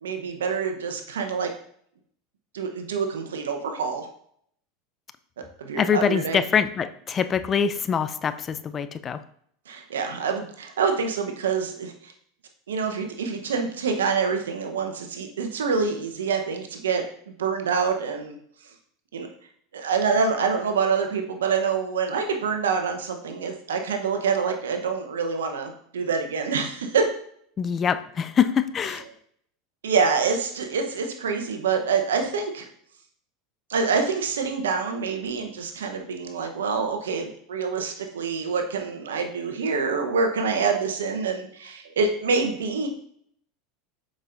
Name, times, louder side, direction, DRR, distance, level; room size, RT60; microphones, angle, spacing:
voice 1, 0.0-1.5 2.5-4.1 5.6-6.4 9.7-12.1 12.7-18.4 19.1-19.3 19.7-27.0 29.8-32.7 33.7-42.9, right 5 dB, 85° right, 5 dB, 1.0 m, -26 dB
voice 2, 5.8-9.2 27.6-29.0, left 7 dB, 30° left, 12 dB, 0.5 m, -24 dB
7.3 x 5.3 x 2.6 m, 0.65 s
hypercardioid pair, 90°, 0 cm